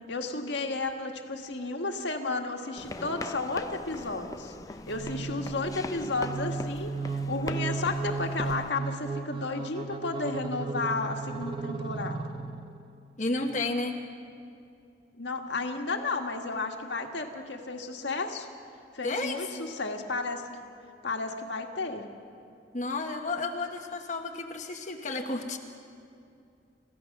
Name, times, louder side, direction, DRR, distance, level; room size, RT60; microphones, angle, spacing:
voice 1, 0.1-4.5 4.9-12.3 15.2-18.5 18.9-20.5 21.0-22.0, left 3 dB, 70° left, 3 dB, 1.8 m, -33 dB
sound 1, 2.8-8.7, left 2 dB, 20° left, 0.4 m, -40 dB
sound 2, 4.9-12.8, right 4 dB, 25° right, 0.7 m, -35 dB
voice 2, 13.2-14.0 19.0-19.3 22.7-25.6, left 2 dB, 40° left, 3 dB, 1.2 m, -32 dB
29.5 x 15.5 x 6.0 m, 2.5 s
head